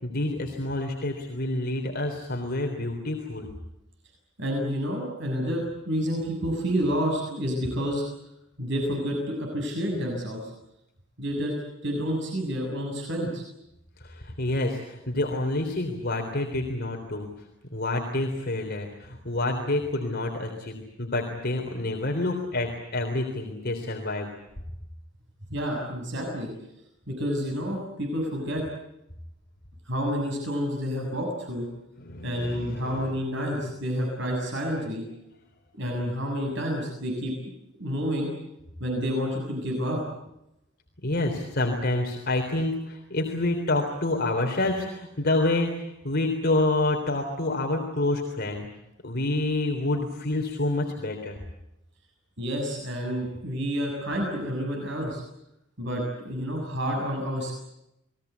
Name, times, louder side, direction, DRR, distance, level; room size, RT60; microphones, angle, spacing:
voice 1, 0.0-3.5 14.0-17.3 17.7-24.3 32.0-33.2 41.0-48.7 49.0-51.4, left 2 dB, 50° left, 1 dB, 3.6 m, -28 dB
voice 2, 4.4-8.0 8.6-10.5 11.2-11.5 11.8-13.4 25.5-26.5 27.1-28.6 29.8-31.7 32.2-35.0 35.8-37.3 37.8-38.3 38.8-40.0 52.4-55.2 55.8-57.5, equal, 65° right, 1 dB, 7.3 m, -29 dB
30.0 x 21.5 x 8.3 m, 0.87 s
head